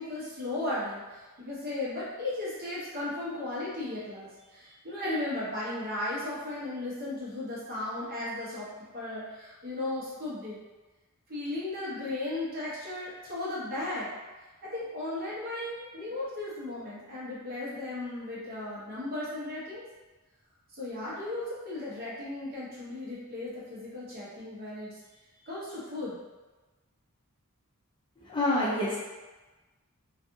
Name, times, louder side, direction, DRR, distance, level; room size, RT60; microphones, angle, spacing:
voice 1, 0.0-8.7 8.9-10.6 11.3-14.2 14.6-19.8 20.7-25.0 25.4-26.2, left 2 dB, 45° right, -8 dB, 0.9 m, -36 dB
voice 2, 28.2-29.0, left 1 dB, 20° left, -7 dB, 0.5 m, -27 dB
2.5 x 2.5 x 2.6 m, 1.2 s
head